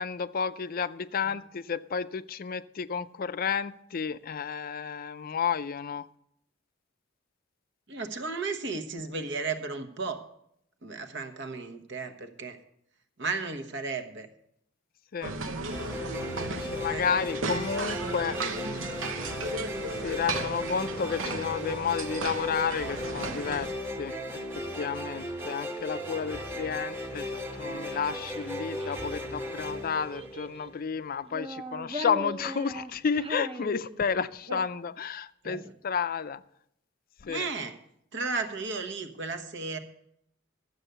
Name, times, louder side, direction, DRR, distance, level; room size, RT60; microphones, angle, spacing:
voice 1, 0.0-6.0 15.1-15.3 16.5-18.4 19.8-23.7 24.0-24.4 24.7-36.4 37.2-37.5, left 6 dB, 50° left, 14 dB, 0.4 m, -31 dB
voice 2, 7.9-10.2 10.8-12.6 13.2-14.3 16.9-17.0 20.3-20.4 25.1-25.3 34.5-34.6 35.4-35.7 37.3-37.7 38.1-39.8, right 4 dB, 65° right, 7 dB, 1.2 m, -34 dB
sound 1, 15.2-23.7, right 3 dB, 90° right, 0.9 m, -35 dB
sound 2, 15.7-30.9, equal, 10° right, 1.1 m, -36 dB
Child speech kid speaking, 27.5-29.2 29.9-30.8 31.2-34.4, equal, 30° right, 0.7 m, -40 dB
12.0 x 8.0 x 6.7 m, 0.73 s
head